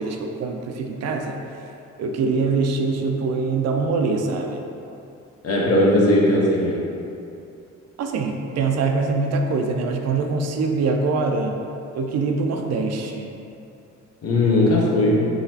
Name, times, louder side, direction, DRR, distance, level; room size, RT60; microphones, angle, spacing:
voice 1, 0.0-1.4 2.0-4.6 8.0-11.6 11.9-13.3, right 4 dB, 60° right, 3 dB, 0.4 m, -23 dB
voice 2, 5.4-6.8 14.2-15.3, left 1 dB, 55° left, -3 dB, 0.8 m, -18 dB
3.9 x 3.0 x 2.8 m, 2.6 s
cardioid pair, 90°, 30 cm